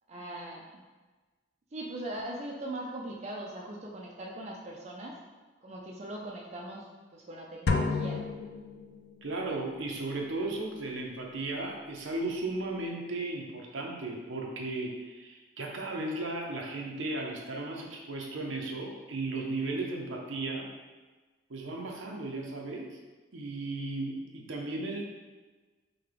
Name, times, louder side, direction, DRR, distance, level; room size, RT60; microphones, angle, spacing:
voice 1, 0.1-0.8 1.7-5.1 5.6-6.9 7.1-8.2, right 1 dB, 35° right, -2 dB, 0.4 m, -40 dB
sound 1, 7.7-9.3, left 4 dB, 55° left, 0.4 m, -31 dB
voice 2, 9.2-20.7 21.5-23.0 23.3-25.0, right 2 dB, 75° right, 0 dB, 0.7 m, -35 dB
5.8 x 2.3 x 3.4 m, 1.3 s
head